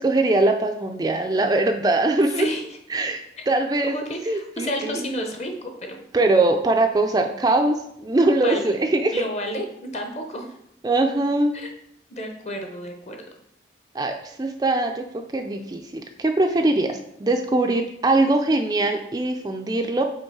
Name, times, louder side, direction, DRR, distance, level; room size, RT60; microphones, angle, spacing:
voice 1, 0.0-2.5 2.9-3.9 4.3-5.1 6.1-9.3 10.8-11.5 13.9-20.0, right 2 dB, 20° right, 5 dB, 0.3 m, -22 dB
voice 2, 2.4-2.7 3.8-6.0 8.4-8.6 9.1-10.6 11.5-11.7 12.1-13.2, equal, 35° left, 4 dB, 0.8 m, -31 dB
5.3 x 3.8 x 4.6 m, 0.76 s
head